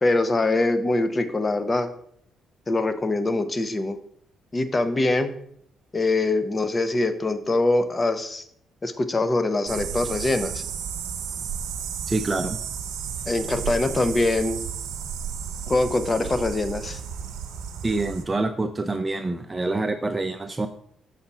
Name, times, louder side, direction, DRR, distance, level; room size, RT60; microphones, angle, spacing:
voice 1, 0.0-1.9 2.7-4.0 4.5-5.3 5.9-8.4 8.8-10.6 13.3-14.6 15.7-17.0, left 2 dB, 25° left, 10 dB, 0.8 m, -23 dB
sound 1, 9.7-18.2, right 7 dB, 85° right, 1.1 m, -33 dB
voice 2, 12.1-12.6 17.8-20.7, right 2 dB, 20° right, 7 dB, 0.5 m, -26 dB
6.6 x 4.2 x 6.0 m, 0.67 s
cardioid pair, 90°, 0 cm